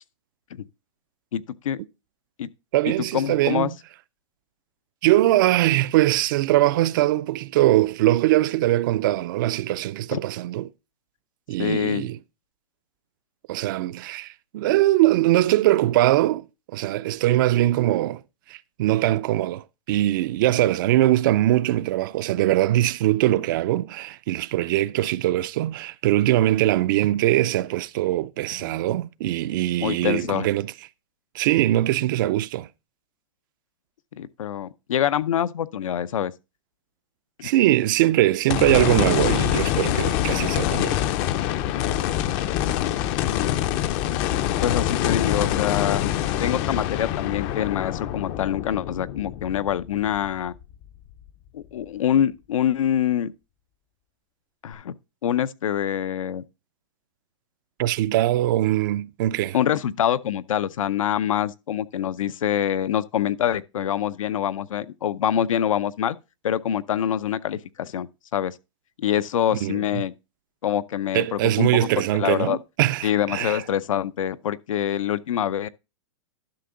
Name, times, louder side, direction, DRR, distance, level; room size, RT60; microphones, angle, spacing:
voice 1, 1.3-1.8 2.4-2.5 2.9-3.7 10.1-10.2 11.6-12.1 29.8-30.5 34.2-36.3 37.4-37.5 43.3-43.6 44.6-50.5 51.5-53.3 54.6-54.9 55.2-56.4 59.5-66.2 66.4-68.5 69.0-70.1 70.6-71.9 72.2-72.6 73.0-75.7, left 10 dB, 90° left, 0.6 m, -25 dB
voice 2, 2.7-3.7 5.0-10.7 11.5-12.2 13.5-16.4 16.7-18.2 18.5-30.7 31.3-32.7 37.4-41.0 57.8-59.6 69.6-70.0 71.1-73.6, right 15 dB, 40° right, 0.4 m, -22 dB
sound 1, 38.5-50.8 51.3-51.4 54.7-54.8, left 12 dB, 30° left, 0.4 m, -25 dB
11.5 x 5.8 x 3.7 m
hypercardioid pair, 155°, 16 cm